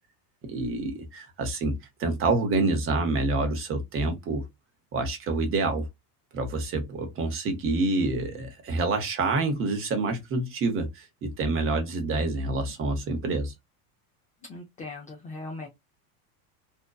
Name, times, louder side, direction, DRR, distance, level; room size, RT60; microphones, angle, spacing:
voice 1, 0.5-4.5 4.9-5.9 6.3-13.5, right 3 dB, 25° right, 0.8 m, -27 dB
voice 2, 14.5-15.7, left 2 dB, 15° left, 0.4 m, -39 dB
2.6 x 2.1 x 2.2 m
supercardioid pair, 130°, 47 cm